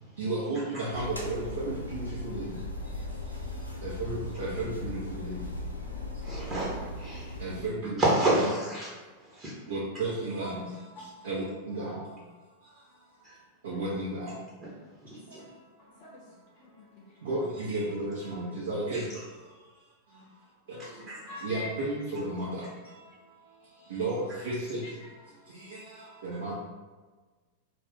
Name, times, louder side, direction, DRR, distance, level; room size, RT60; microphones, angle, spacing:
voice 1, 0.2-2.5 3.8-5.3 7.4-8.0 9.7-10.7 11.2-12.0 13.6-14.3 17.2-19.0 20.7-20.8 21.4-22.6 23.9-24.8 25.7-25.8 26.2-26.5, right 2 dB, 65° right, -7 dB, 0.7 m, -33 dB
sound 1, 0.9-7.6, left 1 dB, 85° left, 0.4 m, -38 dB
voice 2, 6.2-7.4 8.0-8.9 9.2-9.6 13.2-13.4 14.6-14.7 15.0-15.4 18.9-19.0 21.1-21.2, right 1 dB, 25° right, -7 dB, 0.8 m, -29 dB
voice 3, 11.0-11.4 13.7-13.8 15.8-17.2 21.3-21.7 24.8-25.4, left 3 dB, 40° left, -5 dB, 0.5 m, -45 dB
2.4 x 2.4 x 3.5 m, 1.3 s
figure-of-eight pair, 90°, 0 cm